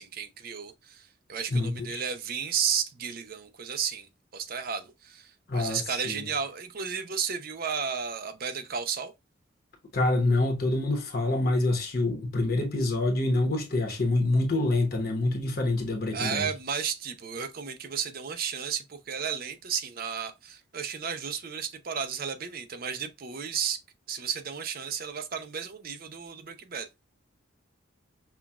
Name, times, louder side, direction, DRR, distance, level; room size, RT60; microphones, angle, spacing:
voice 1, 0.0-9.1 16.1-23.8 24.1-26.9, right 7 dB, 45° right, 0.5 m, -33 dB
voice 2, 1.5-2.0 5.5-6.3 9.9-16.5, left 2 dB, 50° left, 1.0 m, -26 dB
5.7 x 2.3 x 2.3 m
head